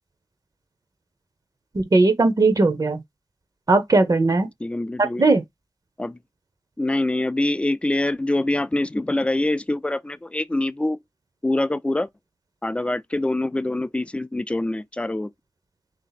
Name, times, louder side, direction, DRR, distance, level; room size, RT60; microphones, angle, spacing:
voice 1, 1.7-3.0 3.7-4.5 5.2-5.4, right 3 dB, 50° right, 0.7 m, -18 dB
voice 2, 4.6-5.3 6.0-6.2 6.8-11.0 11.4-12.1 12.6-15.3, left 2 dB, 15° left, 0.3 m, -24 dB
3.5 x 2.8 x 3.9 m
wide cardioid pair, 80°, 8 cm